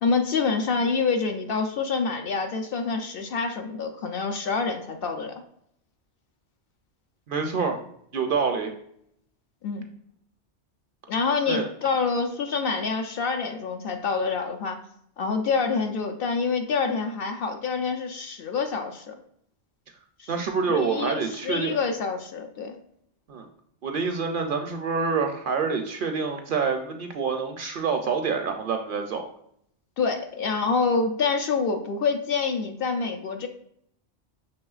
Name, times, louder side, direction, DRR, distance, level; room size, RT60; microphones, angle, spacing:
voice 1, 0.0-5.3 9.6-9.9 11.1-14.8 15.2-19.1 20.2-20.3 20.7-22.7 30.0-33.5, left 4 dB, 65° left, 5 dB, 0.7 m, -27 dB
voice 2, 7.3-7.8 8.1-8.7 11.5-11.7 20.3-21.8 23.3-23.5 23.8-29.2, right 5 dB, 60° right, 4 dB, 0.6 m, -27 dB
6.0 x 3.2 x 2.3 m, 0.69 s
omnidirectional pair, 1.1 m